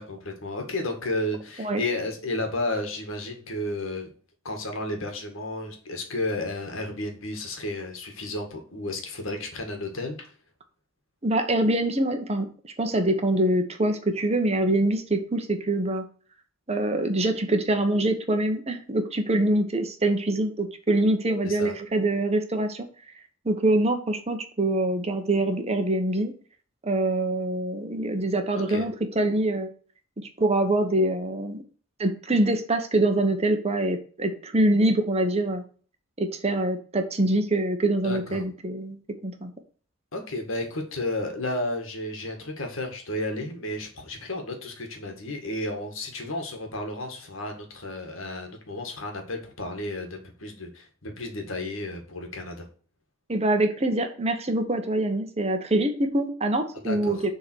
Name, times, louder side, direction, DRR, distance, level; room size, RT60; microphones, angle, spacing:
voice 1, 0.0-4.1 4.4-10.3 21.4-21.7 28.6-28.8 38.0-38.4 40.1-52.7 56.8-57.2, left 1 dB, 70° left, 3 dB, 1.9 m, -32 dB
voice 2, 11.2-12.5 12.8-16.0 16.7-22.9 23.4-26.3 26.8-29.7 30.4-31.6 32.0-35.6 36.2-39.0 39.2-39.5 53.3-57.3, right 1 dB, 30° right, 6 dB, 1.0 m, -24 dB
7.0 x 3.9 x 6.2 m, 0.42 s
head